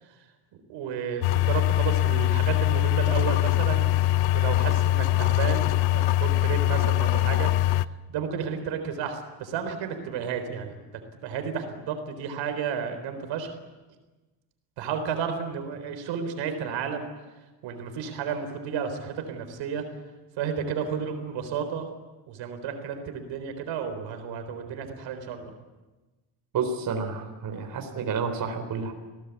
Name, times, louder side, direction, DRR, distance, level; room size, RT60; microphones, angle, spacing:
voice 1, 0.7-4.0 4.3-7.5 8.1-10.8 11.2-13.5 14.8-17.1 17.6-19.9 20.4-21.9 22.3-25.5, right 6 dB, 80° right, 7 dB, 4.1 m, -32 dB
sound 1, 1.2-7.9, left 15 dB, 85° left, 0.8 m, -23 dB
voice 2, 26.5-28.9, right 5 dB, 50° right, 4 dB, 4.0 m, -30 dB
27.5 x 18.0 x 8.4 m, 1.2 s
cardioid pair, 145°, 44 cm